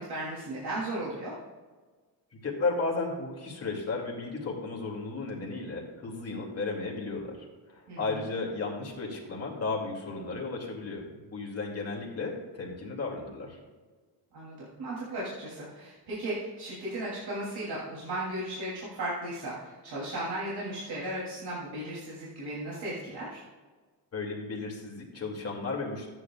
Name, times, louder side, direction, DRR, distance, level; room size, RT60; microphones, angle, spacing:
voice 1, 0.0-1.3 7.9-8.3 14.3-23.4, right 1 dB, 70° right, -7 dB, 3.2 m, -36 dB
voice 2, 2.4-13.6 24.1-26.1, left 3 dB, 35° left, -1 dB, 2.6 m, -34 dB
14.0 x 9.7 x 2.4 m, 1.4 s
wide cardioid pair, 160°, 41 cm